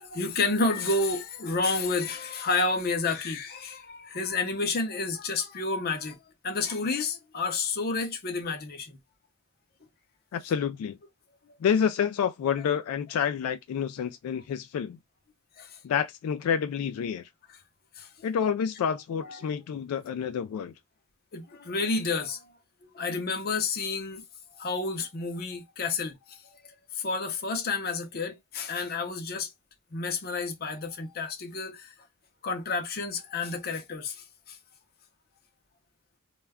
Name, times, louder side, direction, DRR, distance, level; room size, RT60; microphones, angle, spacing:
voice 1, 0.0-6.2 6.4-9.0 15.6-15.8 18.0-18.1 19.2-19.4 21.3-22.5 22.9-24.2 24.6-26.4 26.9-29.5 29.9-31.9 32.4-34.6, left 3 dB, 45° left, 0.6 m, -30 dB
voice 2, 10.3-11.0 11.6-15.0 15.8-17.3 18.2-20.7, left 7 dB, 85° left, 0.3 m, -28 dB
2.3 x 2.1 x 3.4 m
head